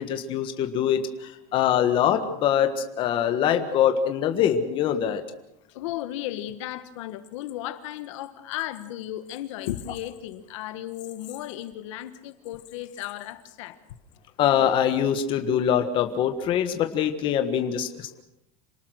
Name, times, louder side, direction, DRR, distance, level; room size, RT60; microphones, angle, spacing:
voice 1, 0.0-5.2 14.4-18.2, left 9 dB, 30° left, 7 dB, 1.5 m, -24 dB
voice 2, 5.7-13.8, left 13 dB, 65° left, 11 dB, 1.6 m, -35 dB
27.5 x 19.0 x 6.5 m, 0.84 s
supercardioid pair, 170°, 17 cm